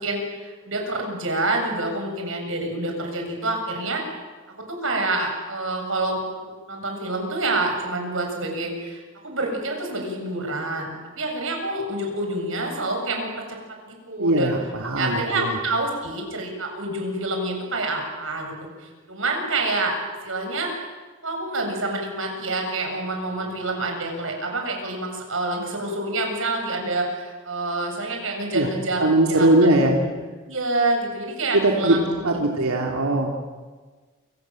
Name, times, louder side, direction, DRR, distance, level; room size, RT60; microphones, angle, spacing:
voice 1, 0.0-4.0 4.8-6.2 6.7-13.6 13.9-14.5 15.0-18.5 18.8-19.9 20.2-20.9 21.2-29.5 29.8-30.1 30.5-32.3, right 2 dB, 65° right, 2 dB, 7.8 m, -27 dB
voice 2, 14.2-15.6 28.5-28.7 29.0-30.0 31.5-32.0 32.2-33.3, right 1 dB, 85° right, 0 dB, 3.0 m, -20 dB
28.5 x 26.5 x 7.8 m, 1.4 s
head